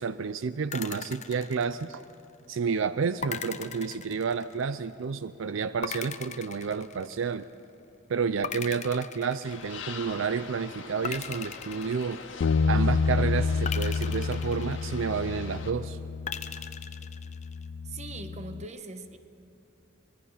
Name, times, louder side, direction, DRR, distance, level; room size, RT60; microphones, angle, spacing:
voice 1, 0.0-2.0 2.5-7.5 8.1-12.2 12.7-16.0, right 5 dB, 75° right, 0.5 m, -30 dB
sound 1, 0.7-2.3 3.2-4.8 5.8-7.5 8.4-10.0 11.0-12.7 13.6-15.3 16.3-17.7, left 7 dB, 35° left, 0.7 m, -39 dB
sound 2, 9.4-15.7, left 5 dB, 75° left, 1.8 m, -44 dB
Bass guitar, 12.4-18.7, left 4 dB, 90° left, 0.4 m, -29 dB
voice 2, 17.8-19.2, right 2 dB, 35° right, 1.1 m, -41 dB
24.5 x 21.5 x 5.6 m
head